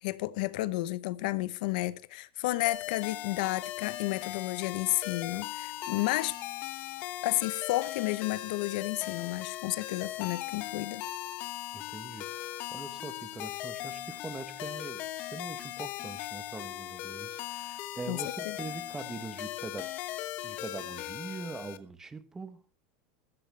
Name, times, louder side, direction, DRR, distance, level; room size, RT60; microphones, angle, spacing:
voice 1, 0.0-6.4 7.2-11.0 18.1-18.6, left 18 dB, 55° left, 0.8 m, -32 dB
sound 1, 2.7-21.8, left 13 dB, 35° left, 1.1 m, -39 dB
voice 2, 11.7-19.9 20.4-22.6, right 3 dB, 10° right, 0.9 m, -43 dB
15.5 x 13.5 x 3.3 m
supercardioid pair, 175°, 5 cm